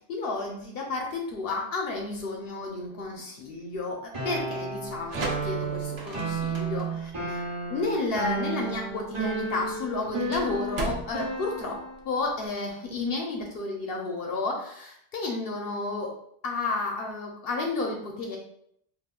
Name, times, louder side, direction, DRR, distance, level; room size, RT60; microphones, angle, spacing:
voice 1, 0.1-16.1 16.4-18.4, left 3 dB, 70° left, 1 dB, 0.7 m, -32 dB
sound 1, 4.1-12.0, right 3 dB, 35° right, 1.0 m, -32 dB
sound 2, 4.9-12.4, right 2 dB, 85° right, 0.8 m, -39 dB
3.5 x 2.4 x 2.3 m, 0.70 s
omnidirectional pair, 1.0 m